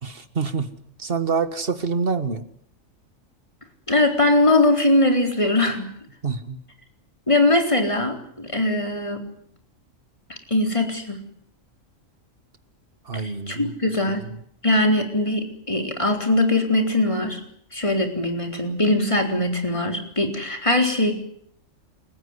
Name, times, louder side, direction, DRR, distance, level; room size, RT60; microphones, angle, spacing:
voice 1, 0.0-0.7 1.0-2.4 6.2-6.6 13.0-13.7, right 5 dB, 45° right, 11 dB, 1.8 m, -26 dB
voice 2, 3.9-5.9 7.3-9.2 10.3-11.2 13.2-14.2 14.6-17.4 17.7-21.1, left 1 dB, 25° left, 3 dB, 4.1 m, -21 dB
29.0 x 15.0 x 9.8 m, 0.68 s
omnidirectional pair, 1.4 m